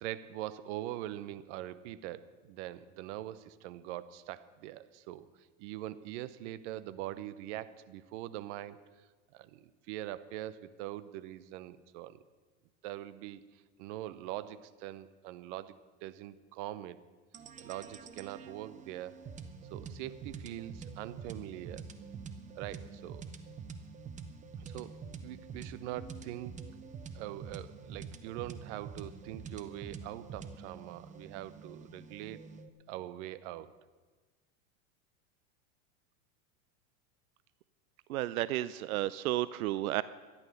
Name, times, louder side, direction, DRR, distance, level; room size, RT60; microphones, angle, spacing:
voice 1, 0.0-5.3 5.6-8.8 9.3-12.2 12.8-17.0 17.6-19.2 19.7-21.8 22.5-23.2 24.6-24.9 25.2-26.6 27.1-32.4 32.9-33.7, right 14 dB, 55° right, 16 dB, 0.9 m, -43 dB
sound 1, 17.3-32.7, right 5 dB, 20° right, 0.8 m, -46 dB
voice 2, 38.1-40.0, right 15 dB, 90° right, 17 dB, 0.6 m, -32 dB
13.0 x 11.0 x 6.7 m, 1.3 s
supercardioid pair, 130°, 41 cm